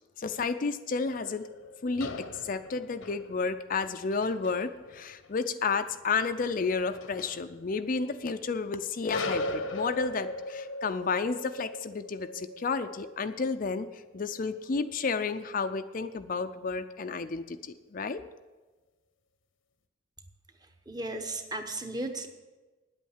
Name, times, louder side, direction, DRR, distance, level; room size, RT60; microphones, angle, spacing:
voice 1, 0.2-1.5 1.8-18.2, left 4 dB, 45° left, 9 dB, 0.4 m, -31 dB
sound 1, 1.1-8.7 9.1-15.6, left 2 dB, 85° left, 1.0 m, -40 dB
voice 2, 20.6-22.3, right 2 dB, 20° right, 5 dB, 1.0 m, -36 dB
9.9 x 8.4 x 7.2 m, 1.2 s
head